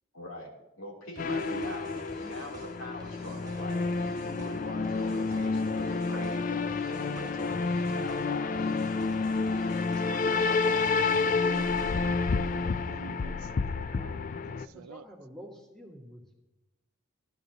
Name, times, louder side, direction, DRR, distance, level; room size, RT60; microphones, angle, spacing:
voice 1, 0.1-8.8, left 1 dB, 85° left, 3.1 m, -43 dB
sound 1, 1.2-14.7, left 4 dB, 40° left, 0.3 m, -29 dB
sound 2, 1.2-12.2, right 2 dB, 20° right, 1.4 m, -52 dB
voice 2, 1.2-1.8 5.9-6.3 10.0-15.0, right 6 dB, 85° right, 0.4 m, -46 dB
voice 3, 14.5-16.3, equal, ahead, 2.2 m, -48 dB
15.5 x 11.5 x 2.9 m
head